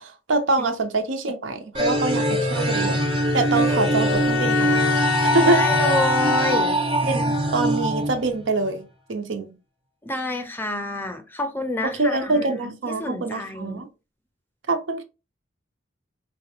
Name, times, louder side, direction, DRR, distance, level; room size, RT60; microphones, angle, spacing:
voice 1, 0.0-3.0 3.3-5.6 7.0-8.8 9.1-9.5 11.8-13.9 14.7-15.0, right 3 dB, 90° right, 0.6 m, -25 dB
sound 1, 1.7-8.7, right 1 dB, 25° right, 0.7 m, -23 dB
Bowed string instrument, 2.5-7.0, left 8 dB, 75° left, 0.3 m, -27 dB
voice 2, 5.4-6.8 10.0-13.8, left 1 dB, 10° left, 0.4 m, -28 dB
3.9 x 2.1 x 2.8 m
head